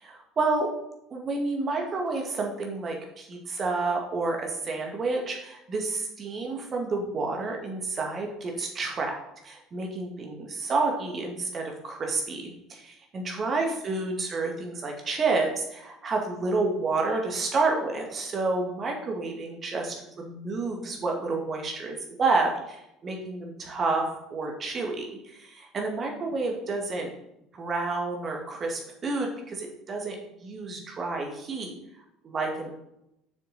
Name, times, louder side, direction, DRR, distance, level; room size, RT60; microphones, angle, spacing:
voice 1, 0.0-0.7 1.1-9.1 9.4-27.1 27.5-30.2 30.4-31.7 32.2-32.7, right 3 dB, 35° right, 1 dB, 2.1 m, -29 dB
6.8 x 6.8 x 4.2 m, 0.83 s
figure-of-eight pair, 60°, 0 cm